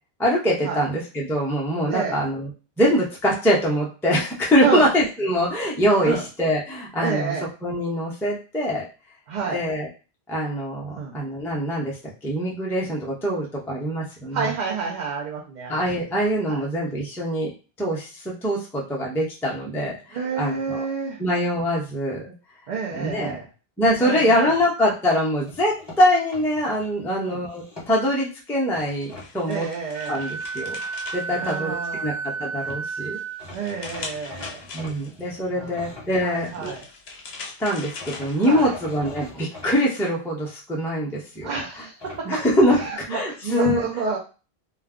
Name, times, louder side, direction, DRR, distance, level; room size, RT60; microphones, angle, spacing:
voice 1, 0.2-2.5 2.8-7.3 7.6-8.8 9.5-9.9 10.3-11.9 12.2-14.5 15.7-17.5 17.8-20.0 20.4-20.8 21.2-22.3 22.9-23.4 23.8-29.7 30.1-30.8 31.1-33.2 34.7-36.7 37.6-41.6 42.2-42.8 43.1-43.9, equal, 5° left, -4 dB, 0.4 m, -23 dB
voice 2, 7.0-7.5 9.3-9.6 11.0-11.2 14.3-15.9 16.5-16.6 20.1-21.2 22.7-23.5 24.0-24.6 27.1-27.4 29.5-30.2 31.4-32.2 33.5-34.6 35.6-35.9 36.2-36.8 38.4-38.7 41.4-42.4 42.7-44.2, right 5 dB, 55° right, -2 dB, 0.6 m, -29 dB
sound 1, 25.5-26.9 27.4-28.2 28.7-29.3 32.4-32.5 32.7-32.8 33.4-36.9 38.0-39.7 42.0-42.9, left 2 dB, 25° left, 0.9 m, -42 dB
sound 2, 28.8-32.2 32.6-35.3 36.2-38.9, left 4 dB, 75° left, 0.9 m, -41 dB
Wind instrument woodwind instrument, 29.9-33.4, right 4 dB, 70° right, 1.1 m, -32 dB
2.3 x 2.2 x 3.5 m, 0.34 s
omnidirectional pair, 1.1 m